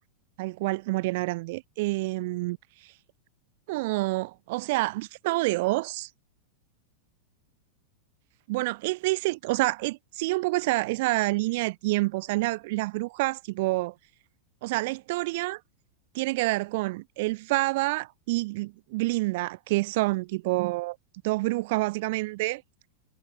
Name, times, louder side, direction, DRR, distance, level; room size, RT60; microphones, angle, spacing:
voice 1, 0.4-2.9 3.7-6.1 8.5-13.9 14.6-15.6 16.1-21.0 21.2-22.6, right 21 dB, 50° right, 0.9 m, -28 dB
figure-of-eight pair, 90°, 0 cm